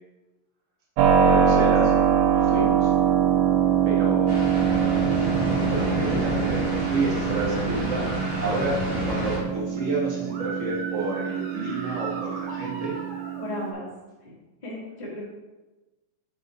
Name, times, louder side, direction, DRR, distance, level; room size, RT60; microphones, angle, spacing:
Keyboard (musical), 1.0-13.7, right 8 dB, 85° right, 2.5 m, -24 dB
voice 1, 1.2-1.9 2.3-2.9 3.8-8.0 8.4-12.9, right 2 dB, 40° right, -4 dB, 1.0 m, -30 dB
sound 1, 4.3-9.4, equal, 70° left, 0.5 m, -29 dB
sound 2, 8.0-8.6 10.3-13.4, right 3 dB, 65° right, 1.9 m, -38 dB
voice 2, 13.4-13.9 14.2-14.3 14.6-15.2, left 1 dB, 20° left, -6 dB, 1.3 m, -35 dB
6.3 x 5.8 x 4.3 m, 1.1 s
omnidirectional pair, 4.1 m